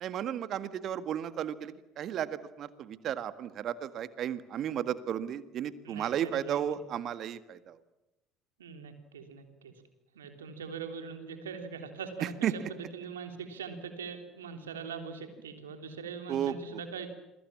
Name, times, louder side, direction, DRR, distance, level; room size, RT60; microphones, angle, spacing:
voice 1, 0.0-7.7 12.4-12.5 16.3-16.5, right 10 dB, 50° right, 13 dB, 1.7 m, -34 dB
voice 2, 5.8-6.8 8.6-9.7 10.1-17.1, right 6 dB, 80° right, 7 dB, 3.3 m, -42 dB
28.0 x 22.0 x 7.4 m, 0.96 s
figure-of-eight pair, 60°, 0 cm